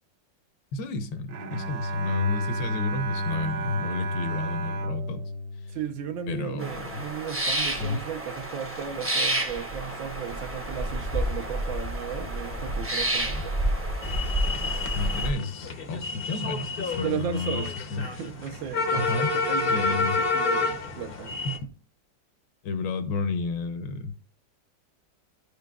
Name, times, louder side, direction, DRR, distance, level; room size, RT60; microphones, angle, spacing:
voice 1, 0.7-5.2 5.7-5.8 6.3-6.9 7.8-8.0 14.9-17.6 17.9-18.1 18.9-20.2 21.4-21.7 22.6-24.2, left 3 dB, 75° left, 1.4 m, -31 dB
Bowed string instrument, 1.3-6.6, equal, 65° right, 1.0 m, -32 dB
voice 2, 5.7-13.6 14.6-14.9 17.0-21.4, right 9 dB, 85° right, 1.6 m, -35 dB
sound 1, 6.6-15.3, right 1 dB, 20° right, 0.4 m, -29 dB
sound 2, 14.0-21.6, left 4 dB, 55° left, 0.6 m, -29 dB
10.5 x 5.0 x 2.3 m
omnidirectional pair, 2.1 m